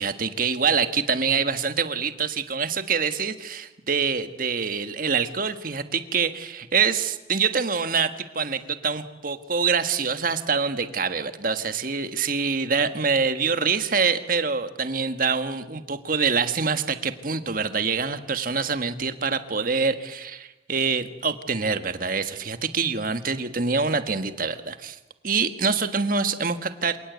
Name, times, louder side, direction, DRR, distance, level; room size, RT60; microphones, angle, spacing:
voice 1, 0.0-25.0 25.2-27.0, right 5 dB, 50° right, 10 dB, 1.5 m, -25 dB
27.0 x 18.5 x 8.2 m, 1.0 s
head